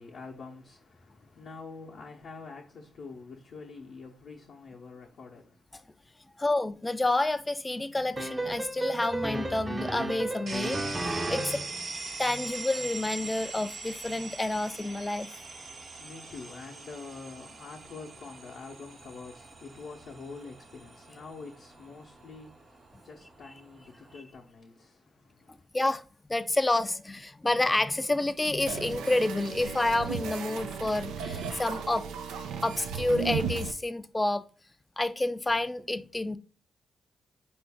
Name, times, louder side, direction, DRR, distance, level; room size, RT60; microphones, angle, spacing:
voice 1, 0.0-6.2 15.9-25.7, left 4 dB, 70° left, 0.7 m, -46 dB
voice 2, 6.4-11.9 12.2-15.3 25.7-26.0 26.3-32.1 32.6-34.4 35.0-36.4, left 2 dB, 20° left, 0.4 m, -29 dB
sound 1, 8.2-11.8, right 2 dB, 30° right, 0.7 m, -33 dB
sound 2, 10.5-24.2, right 3 dB, 60° right, 1.1 m, -42 dB
sound 3, 28.7-33.7, right 6 dB, 90° right, 0.4 m, -35 dB
4.6 x 2.6 x 3.5 m
supercardioid pair, 45°, 0 cm